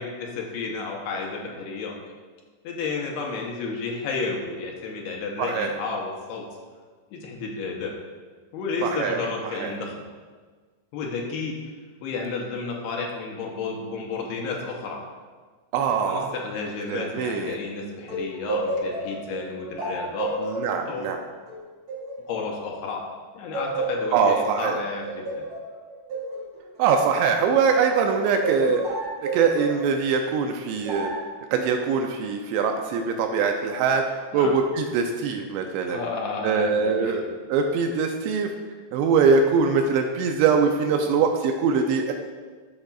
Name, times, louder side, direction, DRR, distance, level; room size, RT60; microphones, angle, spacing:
voice 1, 0.0-1.9 2.6-6.5 7.1-7.9 8.5-10.0 10.9-11.6 12.0-15.0 16.0-20.4 20.9-21.1 22.3-23.0 23.3-25.5 34.3-34.6 35.9-37.3, left 4 dB, 80° left, 0 dB, 2.5 m, -32 dB
voice 2, 5.4-5.7 8.8-9.2 9.6-9.7 15.7-16.3 16.9-17.6 20.4-21.2 24.1-24.8 26.8-28.8 29.2-31.1 31.5-34.0 34.3-36.0 36.4-37.2 37.5-38.5 38.9-42.1, right 5 dB, 85° right, 4 dB, 2.7 m, -22 dB
sound 1, 18.1-23.1 23.5-27.9 28.4-29.9 30.9-31.3, right 2 dB, 45° right, 1.6 m, -31 dB
13.0 x 5.0 x 2.4 m, 1.5 s
omnidirectional pair, 5.1 m